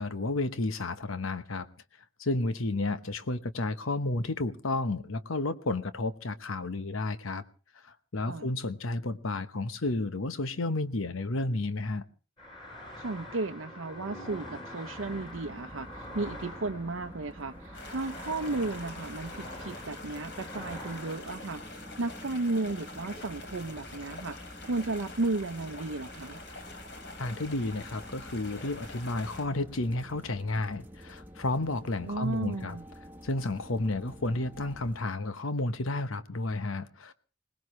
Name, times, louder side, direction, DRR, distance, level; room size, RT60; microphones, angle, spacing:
voice 1, 0.0-1.7 2.2-7.4 7.8-12.0 27.2-32.8 33.2-37.1, left 2 dB, 90° left, 1.0 m, -32 dB
sound 1, 12.4-25.6 26.0-26.7 26.9-27.7 28.0-30.3, left 1 dB, 25° left, 7.3 m, -47 dB
voice 2, 13.0-21.6 22.0-26.4 32.0-32.8, right 3 dB, 80° right, 0.7 m, -34 dB
sound 2, 15.0-35.0, equal, 10° right, 1.2 m, -49 dB
sound 3, 17.7-29.5, left 3 dB, 60° left, 3.4 m, -46 dB
21.0 x 19.5 x 3.2 m
head